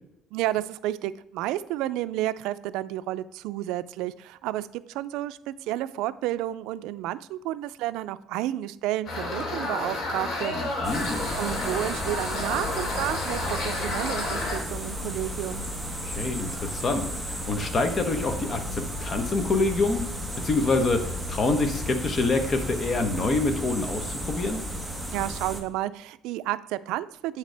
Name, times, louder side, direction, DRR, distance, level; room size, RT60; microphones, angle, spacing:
voice 1, 0.3-10.5 11.4-15.7 25.1-27.4, right 14 dB, 90° right, 14 dB, 0.3 m, -31 dB
sound 1, 9.1-14.6, left 2 dB, 60° left, 2.5 m, -31 dB
voice 2, 10.5-11.3 16.0-20.0 20.4-24.6, left 3 dB, 30° left, 7 dB, 1.1 m, -26 dB
sound 2, 10.8-25.6, equal, ahead, 1.1 m, -34 dB
8.2 x 6.5 x 3.4 m, 0.82 s
cardioid pair, 145°, 0 cm